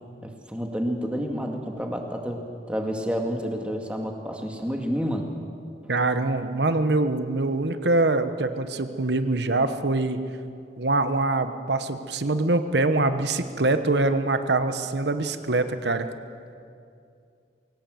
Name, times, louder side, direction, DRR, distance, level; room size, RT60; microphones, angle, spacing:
voice 1, 0.2-5.3, equal, 5° right, 2 dB, 1.9 m, -29 dB
voice 2, 5.9-10.2 10.8-16.1, right 2 dB, 70° right, 10 dB, 1.1 m, -24 dB
22.5 x 17.5 x 7.7 m, 2.4 s
head